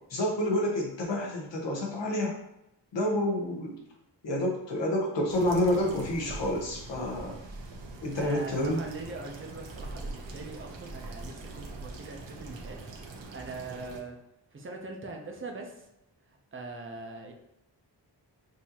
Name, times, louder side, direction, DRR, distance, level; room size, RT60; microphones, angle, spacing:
voice 1, 0.1-2.4 2.9-3.8 4.2-7.4 8.0-8.8, left 1 dB, 80° left, 0 dB, 1.1 m, -29 dB
sound 1, 5.3-14.0, right 2 dB, 85° right, 0.9 m, -43 dB
voice 2, 8.2-12.8 13.3-14.2 14.5-15.7 16.5-17.3, right 3 dB, 30° right, 2 dB, 0.6 m, -42 dB
6.2 x 2.6 x 2.9 m, 0.85 s
wide cardioid pair, 155°, 43 cm